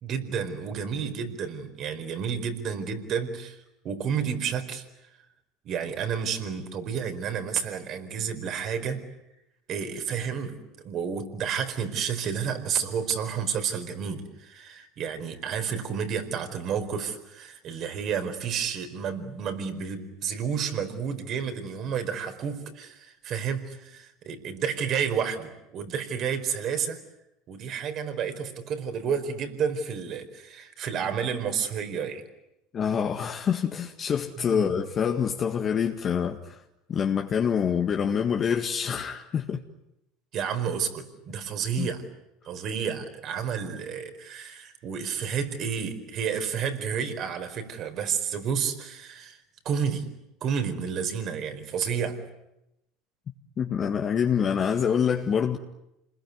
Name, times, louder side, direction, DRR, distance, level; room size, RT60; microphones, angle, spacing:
voice 1, 0.0-3.6 3.8-4.8 5.6-9.0 9.7-27.0 27.5-32.2 34.5-34.7 40.3-42.1 42.5-49.4 49.6-50.1 50.4-52.2, right 7 dB, 50° right, 4.6 m, -30 dB
voice 2, 32.7-36.6 36.9-39.6 41.8-41.9 53.6-55.6, left 7 dB, 40° left, 1.9 m, -26 dB
28.0 x 21.0 x 9.6 m
hypercardioid pair, 90°, 0 cm